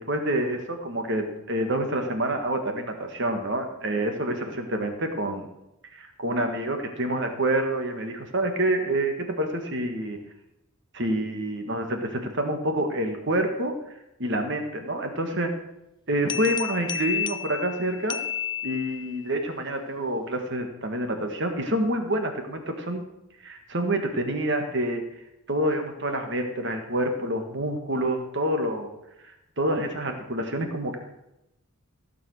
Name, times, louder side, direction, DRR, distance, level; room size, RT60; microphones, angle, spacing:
voice 1, 0.0-5.5 5.9-10.2 10.9-13.7 14.2-15.5 16.1-18.2 18.6-23.0 23.4-25.0 25.5-28.9 29.2-31.0, right 1 dB, 55° right, 5 dB, 1.8 m, -27 dB
sound 1, 16.3-19.2, left 9 dB, 20° left, 0.4 m, -31 dB
15.5 x 7.1 x 6.5 m, 0.88 s
head